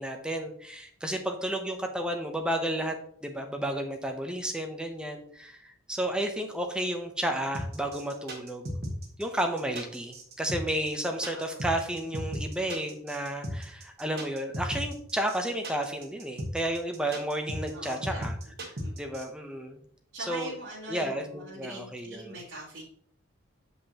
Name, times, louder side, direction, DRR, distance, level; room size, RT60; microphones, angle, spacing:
voice 1, 0.0-2.9 3.2-8.6 9.2-18.4 19.0-19.8 20.2-20.5 20.9-22.4, right 1 dB, 5° right, 4 dB, 0.6 m, -32 dB
sound 1, 7.5-19.2, equal, 50° right, 1.4 m, -36 dB
voice 2, 11.2-11.6 17.7-18.2 18.8-18.9 20.1-22.8, right 1 dB, 70° right, -9 dB, 2.3 m, -42 dB
7.3 x 5.5 x 2.8 m, 0.62 s
head